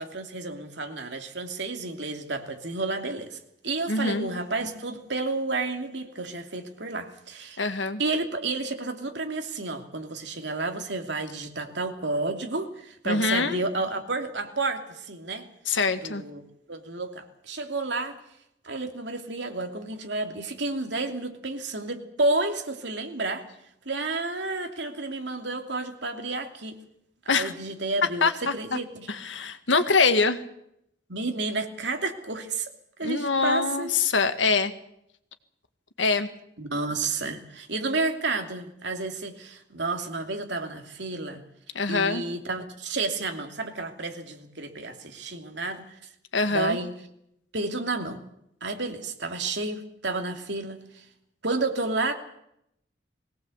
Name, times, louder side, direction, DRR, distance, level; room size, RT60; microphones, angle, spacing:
voice 1, 0.0-7.6 8.0-15.5 16.0-16.4 16.7-18.2 18.6-23.5 23.8-26.8 27.2-29.1 31.1-32.7 33.0-33.9 36.6-41.4 41.9-45.9 46.5-46.9 47.5-48.2 48.6-51.0 51.4-52.1, right 3 dB, 70° right, 5 dB, 2.9 m, -31 dB
voice 2, 3.9-4.3 7.6-8.0 13.1-13.6 15.7-16.2 27.3-27.5 28.2-28.5 29.1-30.4 33.0-34.7 36.0-36.3 41.8-42.2 46.3-46.8, left 4 dB, 85° left, 9 dB, 1.8 m, -24 dB
21.5 x 18.0 x 8.1 m, 0.77 s
head